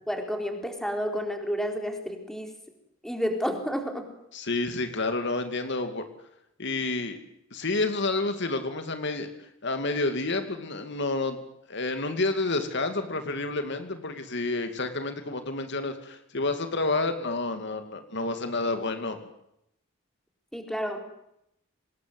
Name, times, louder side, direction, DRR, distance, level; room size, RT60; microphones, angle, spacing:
voice 1, 0.1-2.5 3.0-4.0 20.5-21.0, equal, ahead, 4 dB, 4.1 m, -30 dB
voice 2, 4.3-6.0 6.6-7.2 7.5-11.4 11.7-19.2, left 2 dB, 60° left, 7 dB, 2.6 m, -29 dB
26.0 x 20.0 x 7.9 m, 0.79 s
head